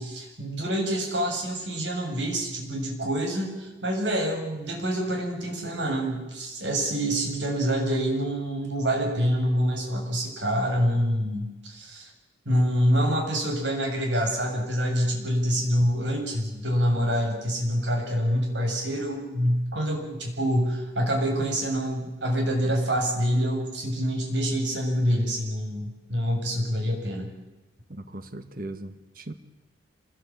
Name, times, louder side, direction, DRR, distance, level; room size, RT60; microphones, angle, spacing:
voice 1, 0.0-12.1 12.5-27.3, equal, 75° right, 7.5 m, -26 dB
voice 2, 27.9-29.3, right 1 dB, 50° right, 1.8 m, -38 dB
27.0 x 21.0 x 8.9 m
head